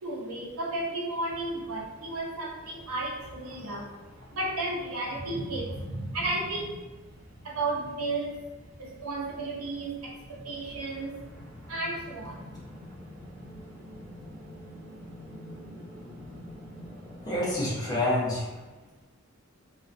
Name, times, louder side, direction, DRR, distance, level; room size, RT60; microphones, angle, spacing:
voice 1, 0.0-7.1 7.4-8.4 8.8-11.2 11.7-12.5, right 2 dB, 80° right, -2 dB, 0.6 m, -33 dB
sound 1, 1.3-17.8, equal, 35° right, 0.7 m, -48 dB
voice 2, 17.2-18.6, left 1 dB, 20° left, -6 dB, 0.6 m, -28 dB
2.5 x 2.0 x 2.4 m, 1.2 s
head